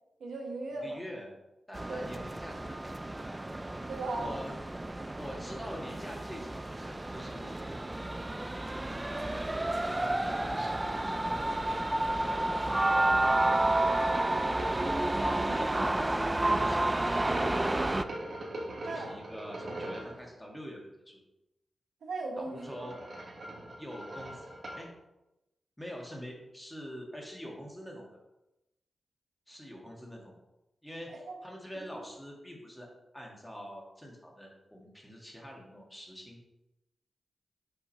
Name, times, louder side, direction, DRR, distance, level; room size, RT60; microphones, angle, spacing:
voice 1, 0.2-1.0 1.9-2.1 3.9-4.3 14.8-15.9 18.8-19.1 22.0-22.9 31.1-31.4 31.7-32.0, right 2 dB, 90° right, 1 dB, 1.2 m, -38 dB
voice 2, 0.8-1.3 1.7-2.8 4.2-4.5 5.2-7.8 9.0-13.4 16.4-17.7 18.8-20.8 21.1-21.2 22.4-23.0 23.8-24.5 24.8-24.9 25.8-28.2 29.5-30.3 30.8-31.1 31.4-32.9 33.1-36.4, equal, 5° left, -1 dB, 1.8 m, -45 dB
sound 1, 1.7-18.0, right 1 dB, 20° right, 0.3 m, -30 dB
sound 2, 10.8-15.3 16.9-20.2 22.3-24.9, right 1 dB, 60° right, 1.4 m, -42 dB
5.7 x 3.6 x 5.6 m, 0.94 s
cardioid pair, 70°, 0 cm